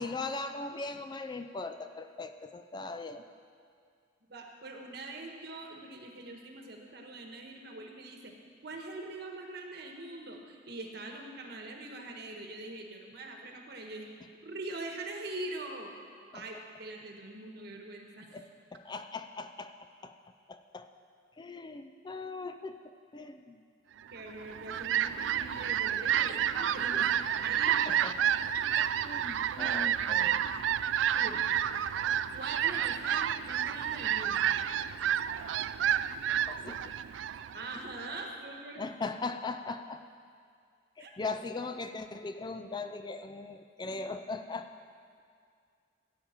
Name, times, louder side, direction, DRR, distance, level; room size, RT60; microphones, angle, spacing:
voice 1, 0.0-3.2 16.3-16.4 18.3-18.5 18.7-20.1 20.5-20.9 21.4-23.6 27.7-28.2 29.0-30.5 36.5-36.8 38.8-40.0 41.0-44.7, left 3 dB, 25° left, 9 dB, 0.4 m, -39 dB
voice 2, 4.3-8.3 8.6-14.1 14.4-15.9 16.3-18.4 24.1-27.1 27.4-27.8 31.1-31.4 32.3-34.5 37.5-38.8 41.0-41.1 43.9-44.0, right 2 dB, 60° right, 2 dB, 1.3 m, -43 dB
Fowl, 24.3-38.2, right 10 dB, 85° right, 0.3 m, -30 dB
15.0 x 8.7 x 4.4 m, 2.2 s
head